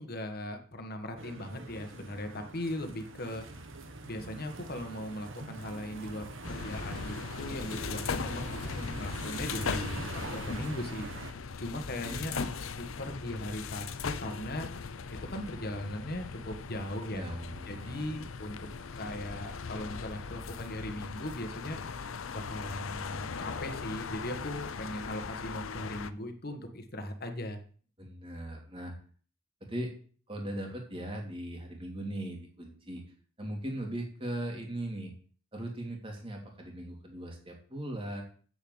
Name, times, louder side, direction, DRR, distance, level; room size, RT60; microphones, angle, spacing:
voice 1, 0.0-3.6 4.0-12.4 12.7-14.7 15.1-17.2 17.7-18.6 18.9-21.8 22.3-27.6, left 1 dB, 50° left, 6 dB, 1.6 m, -39 dB
sound 1, 1.2-11.3, right 2 dB, 70° right, 1.6 m, -44 dB
sound 2, 6.4-26.1, left 5 dB, 80° left, 0.7 m, -39 dB
voice 2, 17.1-18.0 28.0-28.9 29.7-29.9 30.3-33.0 33.4-35.1 35.5-38.2, right 1 dB, 25° right, 1 dB, 2.9 m, -39 dB
8.1 x 7.0 x 8.0 m, 0.44 s
head